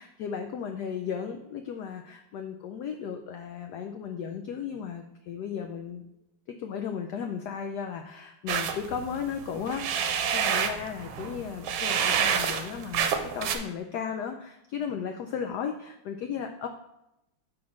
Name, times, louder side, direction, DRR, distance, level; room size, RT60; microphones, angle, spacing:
voice 1, 0.0-6.0 6.5-16.7, left 7 dB, 75° left, 5 dB, 0.9 m, -35 dB
sound 1, 8.5-13.6, right 7 dB, 80° right, 1.4 m, -28 dB
6.3 x 3.6 x 5.9 m, 0.86 s
omnidirectional pair, 2.2 m